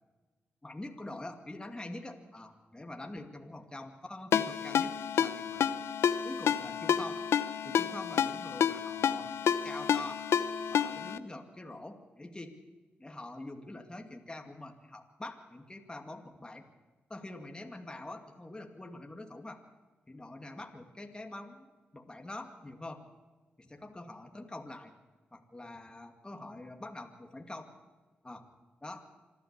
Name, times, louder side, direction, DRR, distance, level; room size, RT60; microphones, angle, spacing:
voice 1, 0.6-5.7 6.2-7.2 7.6-10.2 10.7-12.6 13.0-16.6 17.1-19.6 20.1-21.7 21.9-23.0 23.6-24.9 25.3-27.7 28.2-28.4 28.8-29.1, left 2 dB, 20° left, 4 dB, 2.4 m, -45 dB
Ringtone, 4.3-11.2, left 8 dB, 90° left, 0.8 m, -30 dB
25.5 x 12.0 x 8.4 m, 1.3 s
cardioid pair, 60°, 4 cm